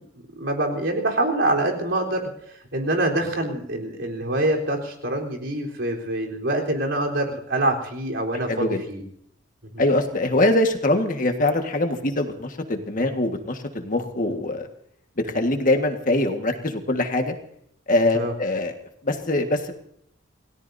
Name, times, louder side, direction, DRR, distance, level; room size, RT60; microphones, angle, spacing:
voice 1, 0.4-2.3 2.7-9.0 9.6-9.7 18.1-18.3, right 1 dB, 70° right, -1 dB, 3.9 m, -25 dB
voice 2, 8.5-8.8 9.8-14.7 15.2-17.3 17.9-18.7 19.0-19.7, left 2 dB, 45° left, 5 dB, 1.6 m, -23 dB
28.5 x 17.5 x 2.7 m, 0.69 s
head